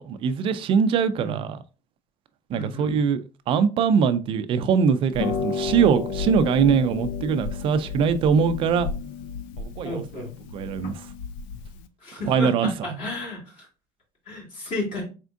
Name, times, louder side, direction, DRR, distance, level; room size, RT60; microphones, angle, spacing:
voice 1, 0.0-1.6 2.5-8.9 9.6-10.0 10.5-11.1 12.3-12.9, right 6 dB, 40° right, 0.4 m, -22 dB
voice 2, 2.5-3.0 9.8-10.3 12.0-13.7 14.3-15.0, left 1 dB, 45° left, 2.1 m, -32 dB
Harp, 5.1-11.9, left 5 dB, 85° left, 0.5 m, -32 dB
4.3 x 3.5 x 2.5 m
cardioid pair, 170°, 14 cm